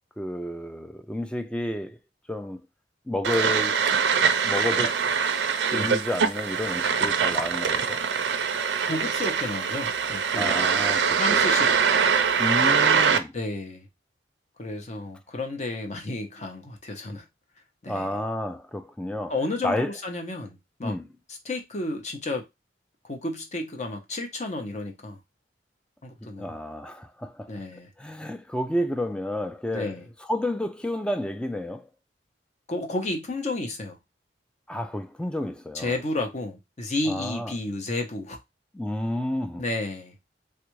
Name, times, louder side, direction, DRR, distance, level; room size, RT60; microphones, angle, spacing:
voice 1, 0.2-2.0 2.3-2.7 3.1-5.0 5.7-8.0 10.4-11.4 11.7-11.8 12.4-13.3 17.9-19.3 19.6-19.9 20.8-21.1 26.2-27.5 28.0-30.0 30.3-31.9 34.7-36.0 37.1-37.5 38.7-39.6, left 1 dB, 5° left, 0.3 m, -31 dB
sound 1, 3.2-13.2, right 6 dB, 75° right, 0.5 m, -23 dB
voice 2, 8.8-10.7 11.1-11.7 13.3-13.9 14.6-17.2 17.8-18.2 19.3-20.9 21.4-22.4 23.1-25.2 26.0-26.5 27.5-27.9 29.7-30.0 32.7-34.0 35.7-38.4 39.6-40.1, left 2 dB, 40° left, 0.8 m, -32 dB
3.3 x 2.5 x 3.1 m
head